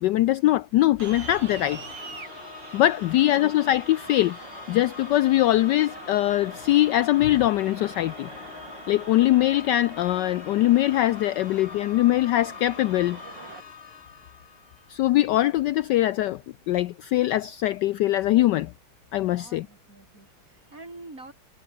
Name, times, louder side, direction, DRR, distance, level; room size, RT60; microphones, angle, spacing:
voice 1, 0.0-1.8 2.7-4.4 4.7-8.3 8.9-13.2 14.9-16.4 16.7-18.7 19.1-19.7, left 14 dB, 75° left, 1.0 m, -22 dB
sound 1, 0.9-15.3, left 7 dB, 45° left, 0.8 m, -43 dB
sound 2, 1.0-13.6, right 5 dB, 60° right, 3.4 m, -44 dB
voice 2, 3.1-3.5 14.8-14.9 19.2-21.3, right 2 dB, 40° right, 5.7 m, -47 dB
omnidirectional pair, 2.2 m